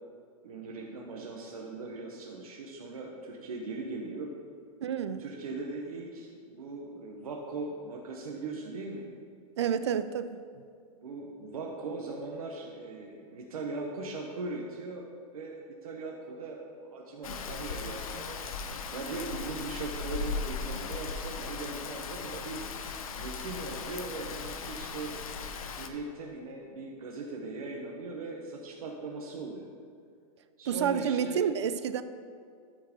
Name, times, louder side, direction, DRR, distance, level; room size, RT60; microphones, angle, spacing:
voice 1, 0.4-4.3 5.2-9.1 11.0-15.1 15.3-22.6 23.2-25.2 25.8-29.7 30.6-31.4, right 3 dB, 70° right, 0 dB, 1.2 m, -39 dB
voice 2, 4.8-5.3 9.6-10.4 30.7-32.0, right 8 dB, 50° right, 12 dB, 0.4 m, -29 dB
Rain, 17.2-25.9, left 4 dB, 65° left, 0.8 m, -37 dB
13.0 x 4.7 x 4.5 m, 2.3 s
hypercardioid pair, 180°, 19 cm